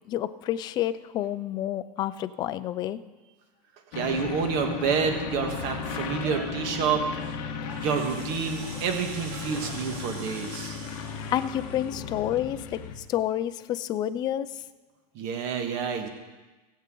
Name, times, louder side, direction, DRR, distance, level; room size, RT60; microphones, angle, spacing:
voice 1, 0.1-3.0 11.3-14.6, left 12 dB, 20° left, 12 dB, 0.3 m, -29 dB
sound 1, 3.9-13.0, left 6 dB, 50° left, 1.5 m, -35 dB
voice 2, 3.9-7.1 7.8-10.8 15.1-16.1, right 6 dB, 45° right, 4 dB, 1.5 m, -28 dB
Animal, 5.0-10.0, equal, 10° right, 2.6 m, -45 dB
Rattle (instrument), 7.6-12.4, right 4 dB, 60° right, 3.4 m, -45 dB
21.0 x 8.2 x 3.8 m, 1.2 s
supercardioid pair, 165°, 21 cm